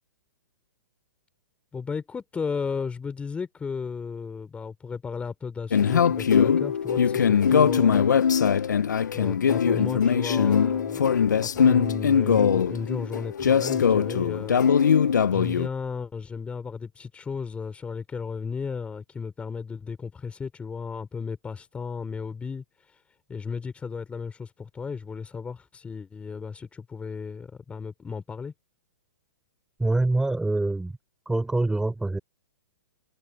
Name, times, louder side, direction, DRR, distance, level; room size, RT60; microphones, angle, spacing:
voice 1, 1.7-8.8 9.1-14.9 15.3-23.0 23.3-28.5, left 5 dB, 10° left, 4.2 m, -34 dB
sound 1, 5.7-15.7, left 7 dB, 75° left, 1.1 m, -21 dB
voice 2, 29.8-30.9 31.3-32.2, right 2 dB, 5° right, 5.5 m, -25 dB
hypercardioid pair, 120°, 10 cm